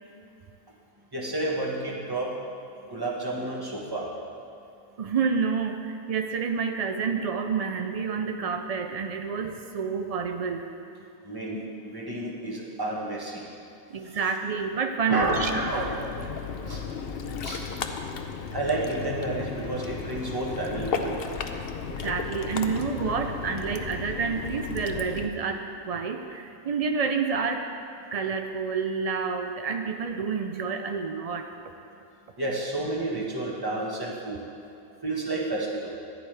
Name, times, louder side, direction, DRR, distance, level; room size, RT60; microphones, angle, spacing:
voice 1, 1.1-2.4 2.9-4.1 11.2-13.5 14.0-14.2 15.1-16.0 16.6-16.8 17.4-17.6 18.5-21.4 32.4-34.4 35.0-36.0, right 2 dB, 15° right, -3 dB, 1.4 m, -30 dB
voice 2, 5.0-10.7 13.9-15.5 21.9-27.6 28.1-31.5, right 5 dB, 80° right, 5 dB, 0.3 m, -29 dB
Ocean, 15.2-25.3, left 6 dB, 55° left, 0.8 m, -34 dB
14.5 x 10.0 x 3.4 m, 2.7 s
omnidirectional pair, 1.4 m